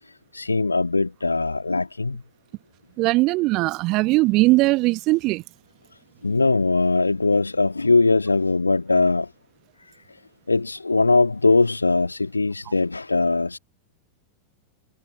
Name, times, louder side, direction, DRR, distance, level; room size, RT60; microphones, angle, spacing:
voice 1, 0.3-2.2 6.2-9.3 10.5-13.6, left 3 dB, 80° left, 1.7 m, -20 dB
voice 2, 3.0-5.4, right 21 dB, 40° right, 1.2 m, -19 dB
figure-of-eight pair, 90°, 0 cm